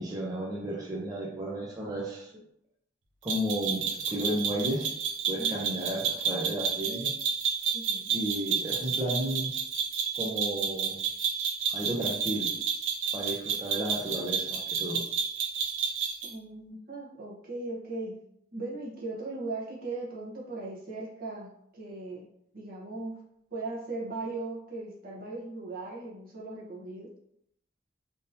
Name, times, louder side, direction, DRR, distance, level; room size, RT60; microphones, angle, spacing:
voice 1, 0.0-2.3 3.2-5.0 5.3-7.1 8.1-9.5 10.2-11.0 11.7-12.5 13.1-15.0, right 1 dB, 20° right, -4 dB, 0.5 m, -33 dB
sound 1, 3.3-16.3, right 6 dB, 75° right, 0.6 m, -31 dB
voice 2, 5.4-5.7 7.7-8.1 16.2-18.2 18.5-22.3 22.5-23.1 23.5-27.1, right 2 dB, 50° right, -4 dB, 0.9 m, -38 dB
3.6 x 2.7 x 2.6 m, 0.74 s
head